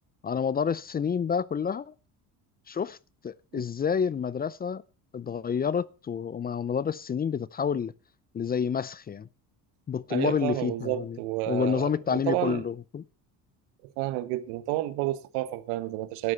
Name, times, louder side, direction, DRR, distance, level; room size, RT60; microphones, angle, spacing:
voice 1, 0.2-1.9 2.7-3.0 3.2-4.8 5.1-7.9 8.3-9.3 9.9-11.2 11.5-13.0, left 7 dB, 25° left, 0.5 m, -29 dB
voice 2, 10.1-12.6 14.0-16.3, right 16 dB, 85° right, 1.5 m, -30 dB
12.0 x 9.5 x 5.7 m
supercardioid pair, 100°, 39 cm